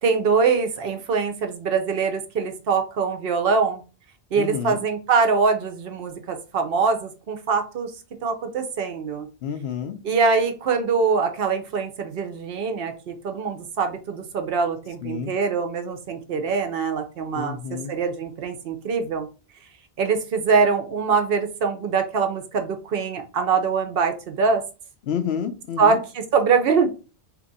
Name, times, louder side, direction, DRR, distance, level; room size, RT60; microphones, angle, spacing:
voice 1, 0.0-3.8 4.3-7.9 8.2-9.3 10.0-17.6 17.9-19.3 20.0-24.6 25.8-26.9, right 5 dB, 65° right, 6 dB, 0.8 m, -23 dB
voice 2, 4.3-4.8 9.4-10.0 15.0-15.3 17.3-17.9 25.0-26.0, left 7 dB, 70° left, 8 dB, 0.8 m, -29 dB
2.9 x 2.4 x 3.9 m, 0.33 s
omnidirectional pair, 1.1 m